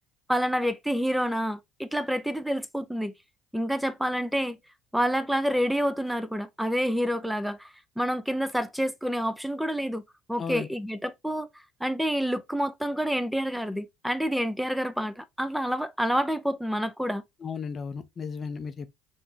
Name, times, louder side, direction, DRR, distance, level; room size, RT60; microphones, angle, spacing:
voice 1, 0.3-3.1 3.5-4.6 4.9-10.0 10.3-17.2, equal, ahead, 0.5 m, -28 dB
voice 2, 17.4-19.0, left 5 dB, 40° left, 0.5 m, -35 dB
5.7 x 2.7 x 2.8 m
supercardioid pair, 80°, 0 cm